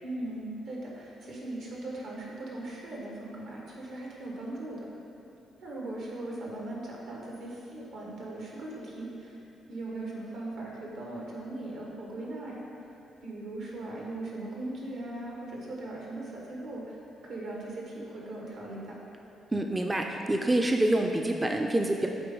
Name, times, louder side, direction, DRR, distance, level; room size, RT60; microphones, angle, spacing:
voice 1, 0.0-4.9 5.6-9.4 9.7-12.6 13.2-17.0 17.2-19.0, right 2 dB, 75° right, -3 dB, 1.5 m, -39 dB
voice 2, 19.5-22.1, right 1 dB, 15° right, 3 dB, 0.4 m, -26 dB
7.8 x 4.2 x 3.8 m, 2.9 s
cardioid pair, 90°, 0 cm